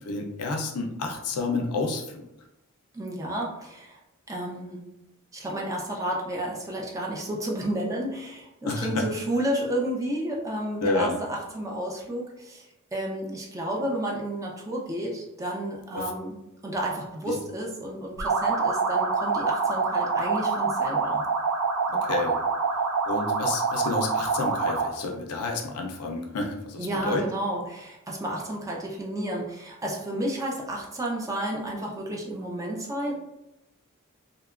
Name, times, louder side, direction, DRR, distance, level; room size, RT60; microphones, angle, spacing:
voice 1, 0.1-2.0 8.6-9.1 10.8-11.2 15.9-16.1 17.3-17.4 21.9-22.3 23.1-27.3, left 3 dB, 85° left, 2 dB, 0.5 m, -29 dB
voice 2, 2.9-4.0 4.3-4.9 5.3-12.7 12.9-16.4 16.6-21.2 26.8-33.1, right 1 dB, 15° right, -2 dB, 0.3 m, -31 dB
sound 1, 18.2-25.0, right 4 dB, 80° right, 0.4 m, -26 dB
2.8 x 2.2 x 2.4 m, 0.91 s
head